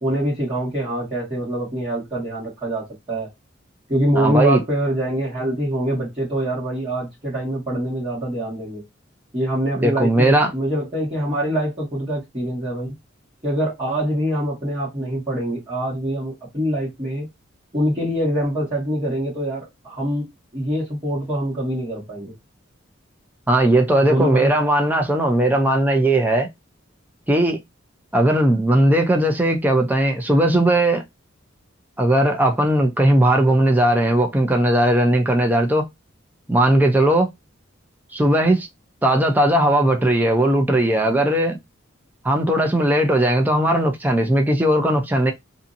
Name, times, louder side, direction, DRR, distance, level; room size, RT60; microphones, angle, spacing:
voice 1, 0.0-3.3 3.9-8.8 9.3-12.9 13.4-17.3 17.7-22.3 24.1-24.5, right 1 dB, 25° right, 1.4 m, -24 dB
voice 2, 4.2-4.6 9.8-10.5 23.5-26.5 27.3-27.6 28.1-31.0 32.0-35.9 36.5-37.3 38.1-38.7 39.0-41.6 42.2-45.3, right 1 dB, 10° right, 0.5 m, -18 dB
2.7 x 2.6 x 2.5 m
head